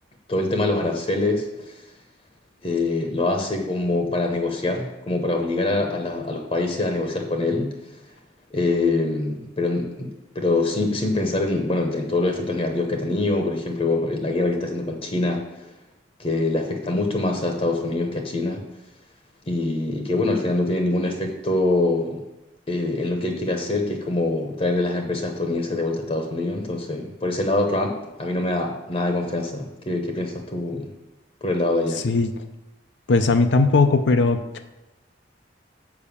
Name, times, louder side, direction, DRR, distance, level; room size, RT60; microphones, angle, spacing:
voice 1, 0.3-1.8 2.6-7.7 8.5-10.1 10.3-15.4 16.2-18.6 19.5-22.2 22.7-30.9 31.4-32.0, left 2 dB, 30° left, 4 dB, 0.9 m, -24 dB
voice 2, 33.1-34.4, left 3 dB, 70° left, 7 dB, 0.6 m, -18 dB
7.0 x 5.4 x 7.0 m, 1.0 s
head